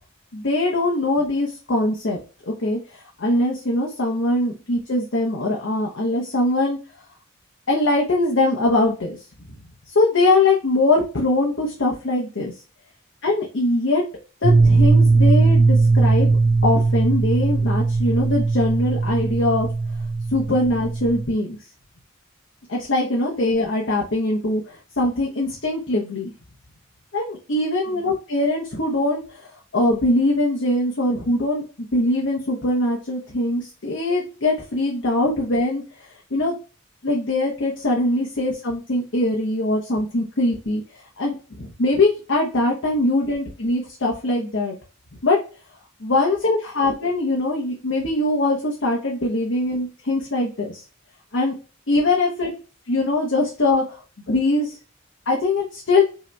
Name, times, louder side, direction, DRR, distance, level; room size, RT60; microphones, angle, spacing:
voice 1, 0.3-2.2 2.5-6.8 7.7-9.2 9.9-12.5 13.2-14.0 14.4-16.3 16.6-19.7 20.3-21.6 22.7-26.3 27.1-35.8 36.3-36.6 37.0-40.8 41.2-44.7 45.2-45.4 46.0-50.8 51.3-51.5 51.9-52.5 52.9-54.0 54.3-54.8 55.3-56.0, left 2 dB, 65° left, -1 dB, 0.9 m, -22 dB
sound 1, 14.4-21.3, right 3 dB, 70° right, 0.6 m, -18 dB
5.5 x 2.9 x 2.2 m, 0.35 s
head